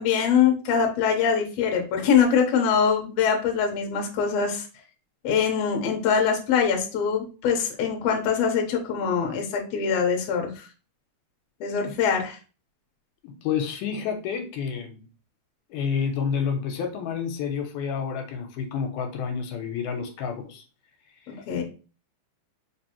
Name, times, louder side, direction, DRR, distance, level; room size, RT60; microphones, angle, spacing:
voice 1, 0.0-4.7 5.2-10.7 11.6-12.4 21.5-21.6, left 7 dB, 70° left, 3 dB, 1.7 m, -23 dB
voice 2, 13.2-15.1 15.7-20.7, left 6 dB, 90° left, 5 dB, 2.1 m, -29 dB
4.7 x 2.6 x 2.9 m, 0.35 s
omnidirectional pair, 3.6 m